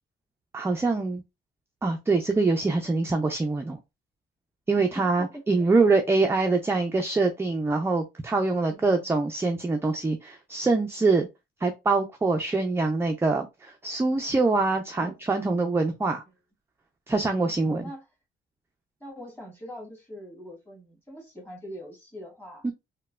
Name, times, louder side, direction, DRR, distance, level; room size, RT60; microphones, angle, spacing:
voice 1, 0.5-1.2 1.8-3.8 4.7-11.3 11.6-16.2 17.1-17.9 22.6-22.7, right 3 dB, 10° right, 0.4 m, -24 dB
voice 2, 4.8-5.7 8.7-9.1 14.9-15.1 17.3-18.0 19.0-22.6, equal, 10° left, 1.5 m, -43 dB
3.0 x 2.1 x 2.3 m
cardioid pair, 90°, 20 cm